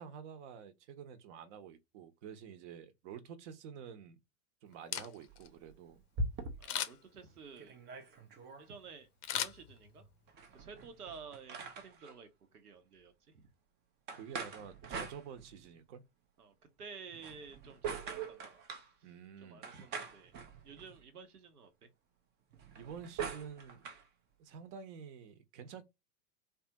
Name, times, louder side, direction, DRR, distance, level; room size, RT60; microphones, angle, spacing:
voice 1, 0.0-4.2 4.6-6.0 14.1-16.0 19.0-19.7 22.8-23.9 24.4-25.8, right 7 dB, 50° right, 0.9 m, -49 dB
Camera, 4.7-5.5 6.6-7.2 9.2-10.2 10.6-10.7, left 10 dB, 75° left, 0.7 m, -38 dB
sound 1, 5.3-6.9 7.3-7.4 7.6-8.7 10.3-12.2 14.1-15.8 17.1-18.9 19.6-21.0 22.5-24.0, right 3 dB, 25° right, 0.5 m, -43 dB
voice 2, 6.6-7.8 8.6-10.1 10.5-13.5 16.4-18.7 19.0-19.1 19.4-20.4 20.6-21.9, right 5 dB, 85° right, 0.9 m, -52 dB
3.3 x 2.4 x 2.8 m
hypercardioid pair, 100°, 45 cm